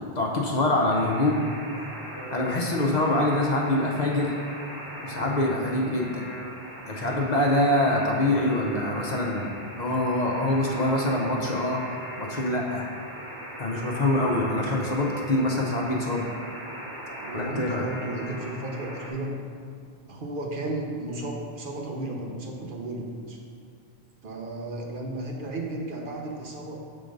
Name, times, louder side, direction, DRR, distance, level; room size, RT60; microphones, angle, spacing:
voice 1, 0.0-1.5 2.3-4.4 5.0-6.2 6.9-9.5 9.8-11.8 12.2-12.9 13.6-16.2 17.3-17.8, left 1 dB, 45° left, -2 dB, 0.8 m, -25 dB
Alarm, 0.9-19.1, right 1 dB, 30° right, 1.2 m, -39 dB
voice 2, 17.2-19.4 20.1-23.4 24.2-26.8, right 1 dB, 55° right, 0 dB, 0.9 m, -34 dB
6.6 x 3.9 x 5.1 m, 2.2 s
omnidirectional pair, 1.1 m